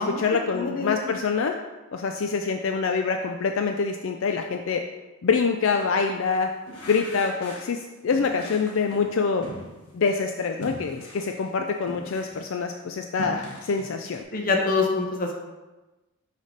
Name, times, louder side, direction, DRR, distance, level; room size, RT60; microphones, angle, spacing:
voice 1, 0.0-1.5 1.9-4.8 5.2-6.5 6.9-9.4 9.9-14.2, left 5 dB, 60° left, 4 dB, 0.4 m, -25 dB
voice 2, 0.5-1.1 14.3-15.4, left 4 dB, 40° left, 1 dB, 0.8 m, -25 dB
sound 1, 5.6-6.0 6.7-7.8 8.1-10.1 10.6-12.5 12.9-14.2, left 1 dB, 85° left, 1.3 m, -41 dB
6.5 x 3.4 x 5.1 m, 1.1 s
head